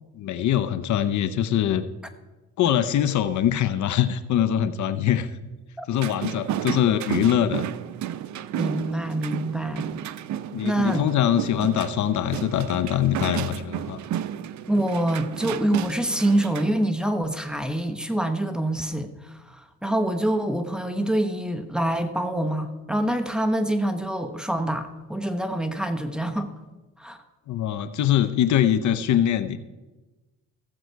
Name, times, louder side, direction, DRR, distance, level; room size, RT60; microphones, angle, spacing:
voice 1, 0.1-1.8 2.6-5.3 5.9-7.6 10.5-14.0 27.5-29.6, left 10 dB, 70° left, 12 dB, 0.7 m, -23 dB
sound 1, 5.9-16.9, right 11 dB, 70° right, 0.6 m, -32 dB
voice 2, 8.5-9.9 10.6-11.0 14.7-26.5 27.0-27.2, right 1 dB, 5° right, 7 dB, 1.1 m, -26 dB
15.5 x 7.7 x 4.6 m, 1.2 s
cardioid pair, 90°, 30 cm